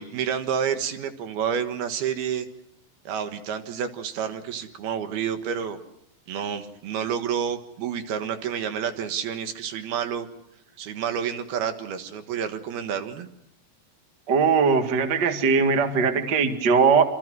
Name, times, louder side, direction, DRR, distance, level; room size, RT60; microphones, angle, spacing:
voice 1, 0.0-2.5 3.0-5.8 6.3-10.3 10.8-13.3, right 8 dB, 65° right, 8 dB, 3.0 m, -29 dB
voice 2, 14.3-17.0, right 5 dB, 85° right, 7 dB, 0.9 m, -20 dB
26.0 x 26.0 x 6.2 m, 0.75 s
omnidirectional pair, 5.5 m